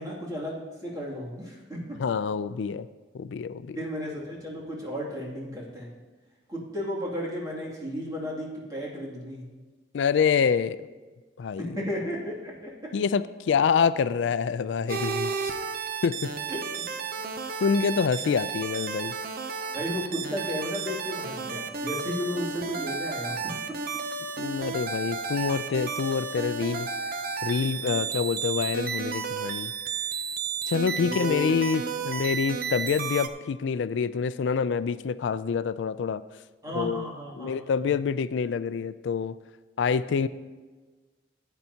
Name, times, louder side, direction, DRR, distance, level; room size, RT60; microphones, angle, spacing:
voice 1, 0.0-2.0 3.8-5.9 6.5-9.5 11.6-12.9 16.5-16.8 17.2-17.4 19.7-23.5 31.0-31.5 36.6-37.7, equal, 20° right, -5 dB, 2.5 m, -34 dB
voice 2, 2.0-2.9 3.1-3.8 9.9-10.9 11.4-11.7 12.9-15.5 16.0-16.3 17.6-19.1 24.4-26.9 27.4-29.7 30.7-36.2 36.7-37.1 37.4-39.3 39.8-40.3, left 6 dB, 85° left, 15 dB, 0.4 m, -26 dB
sound 1, 14.9-33.3, right 5 dB, 55° right, 0.6 m, -32 dB
15.0 x 9.0 x 2.8 m, 1.3 s
head